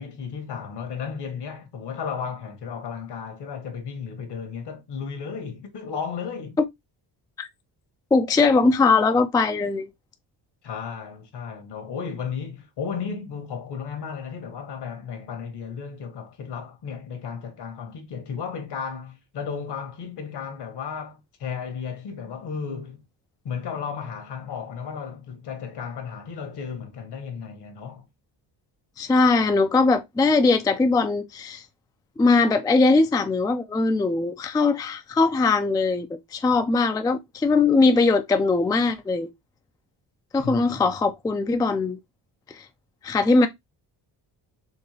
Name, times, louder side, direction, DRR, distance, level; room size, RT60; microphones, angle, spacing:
voice 1, 0.0-6.6 10.6-23.0 23.4-28.1 40.4-40.8, left 6 dB, 70° left, 1.5 m, -34 dB
voice 2, 8.1-9.9 29.0-31.6 32.2-39.3 40.3-42.0 42.5-42.7 43.0-43.5, left 3 dB, 10° left, 0.3 m, -20 dB
4.5 x 3.2 x 3.2 m
cardioid pair, 140°, 43 cm